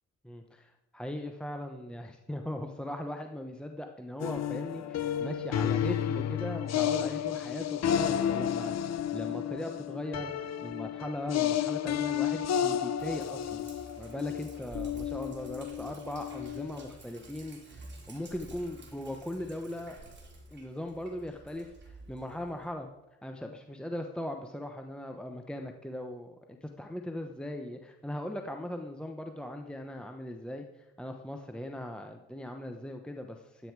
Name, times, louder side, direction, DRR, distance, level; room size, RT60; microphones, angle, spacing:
voice 1, 0.2-13.6 14.0-20.0 20.5-22.9 23.2-33.7, left 1 dB, 5° left, 4 dB, 0.9 m, -39 dB
sound 1, 4.2-16.9, left 10 dB, 60° left, 0.8 m, -32 dB
Sink (filling or washing), 13.0-22.7, right 2 dB, 35° right, 3.1 m, -50 dB
13.0 x 9.4 x 4.7 m, 0.97 s
cardioid pair, 90°, 30 cm